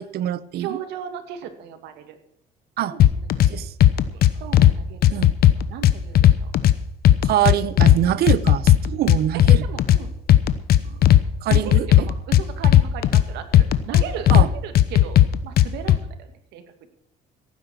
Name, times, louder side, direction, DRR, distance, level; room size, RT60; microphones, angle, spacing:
voice 1, 0.0-0.8 2.8-2.9 3.5-3.7 5.1-5.3 7.2-9.6 11.4-12.1 14.3-14.5, right 12 dB, 70° right, 16 dB, 0.9 m, -24 dB
voice 2, 0.5-2.2 2.8-3.7 4.1-5.0 5.3-6.5 9.6-10.1 10.7-10.9 11.5-15.2 15.4-16.9, right 8 dB, 85° right, 7 dB, 2.3 m, -37 dB
sound 1, 3.0-3.5 3.8-4.7 5.0-6.7 7.0-8.0 8.3-10.0 10.3-11.2 11.5-13.2 13.5-14.5 14.7-16.0, left 12 dB, 65° left, 1.0 m, -14 dB
16.5 x 9.4 x 6.2 m, 0.74 s
cardioid pair, 110°, 17 cm